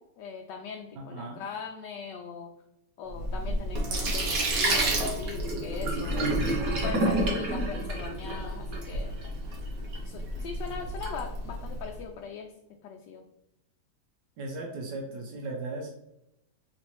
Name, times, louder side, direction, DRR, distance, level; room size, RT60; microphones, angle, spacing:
voice 1, 0.2-2.5 3.0-6.5 6.8-9.1 10.0-12.5 12.8-13.2, left 6 dB, 85° left, 2 dB, 1.2 m, -40 dB
voice 2, 0.9-1.4 14.4-15.9, right 2 dB, 80° right, 0 dB, 1.4 m, -37 dB
Sink (filling or washing), 3.1-11.9, right 1 dB, 60° right, 1.3 m, -29 dB
4.1 x 3.7 x 2.9 m, 0.83 s
omnidirectional pair, 1.8 m